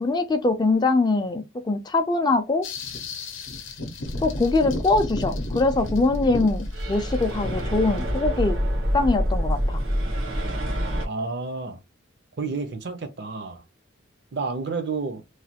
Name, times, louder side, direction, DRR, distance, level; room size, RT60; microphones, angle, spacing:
voice 1, 0.0-2.6 4.2-8.6 8.9-9.8, left 3 dB, 20° left, 0.3 m, -23 dB
sound 1, 2.6-8.0, left 2 dB, 75° left, 0.6 m, -34 dB
sound 2, 4.0-11.1, equal, 80° right, 1.2 m, -27 dB
voice 2, 11.0-11.8 12.4-13.6 14.3-15.2, right 4 dB, 55° right, 0.5 m, -30 dB
3.1 x 2.2 x 2.8 m
head